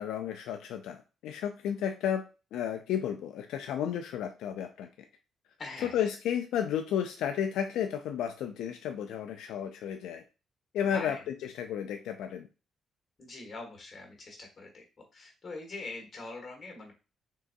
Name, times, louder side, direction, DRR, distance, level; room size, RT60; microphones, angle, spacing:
voice 1, 0.0-2.2 2.5-4.9 5.8-10.2 10.7-12.5, left 9 dB, 85° left, 5 dB, 0.3 m, -32 dB
voice 2, 5.6-6.1 10.8-11.2 13.2-14.8 15.1-16.9, left 3 dB, 40° left, 2 dB, 1.6 m, -43 dB
3.7 x 3.0 x 2.6 m, 0.31 s
cardioid pair, 90°, 0 cm